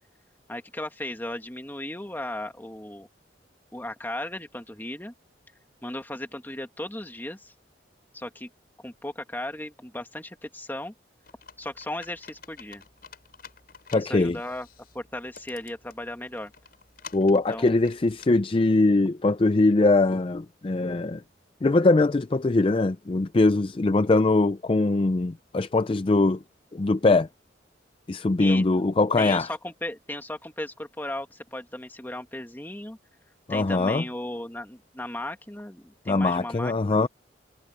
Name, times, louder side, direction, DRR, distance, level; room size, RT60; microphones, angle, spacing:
voice 1, 0.5-3.1 3.7-5.1 5.8-7.5 8.1-8.5 8.8-10.9 11.6-12.8 13.9-14.7 14.9-16.5 17.5-17.8 28.4-28.6 29.2-33.0 33.5-37.1, left 1 dB, 10° left, 2.1 m, -36 dB
Computer keyboard, 11.2-18.3, left 6 dB, 55° left, 6.7 m, -50 dB
voice 2, 13.9-14.4 17.1-21.2 21.6-26.4 26.7-27.3 28.1-29.5 33.5-34.0 36.1-37.1, left 2 dB, 30° left, 0.4 m, -22 dB
head